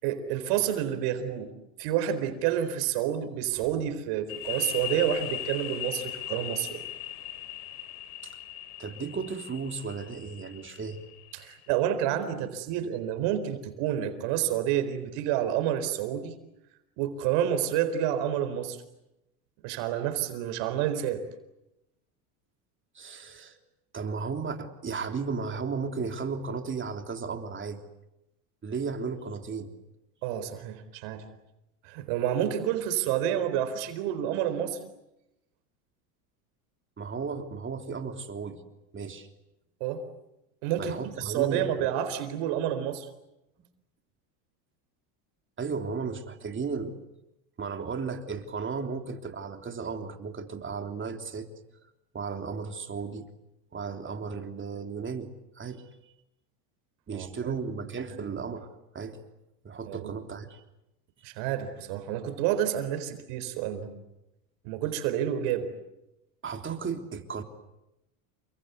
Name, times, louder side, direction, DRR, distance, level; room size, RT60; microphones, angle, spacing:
voice 1, 0.0-1.5 1.8-6.8 11.3-16.3 17.0-18.8 19.6-21.2 30.2-31.3 31.8-34.8 39.8-40.0 40.6-43.1 57.1-57.6 57.8-57.9 59.9-60.1 61.2-63.9 64.6-65.7, right 10 dB, 70° right, 10 dB, 4.3 m, -29 dB
sound 1, 4.3-11.8, left 12 dB, 70° left, 3.3 m, -39 dB
voice 2, 8.8-11.0 22.9-23.6 23.9-27.8 28.6-29.7 37.0-38.6 38.9-39.3 40.8-41.7 45.6-46.9 47.6-51.5 52.1-53.3 53.7-55.3 55.5-55.8 57.1-58.7 58.9-59.2 59.6-60.6 66.4-67.4, right 5 dB, 25° right, 5 dB, 3.4 m, -35 dB
29.0 x 24.0 x 8.2 m, 0.91 s
supercardioid pair, 105°, 46 cm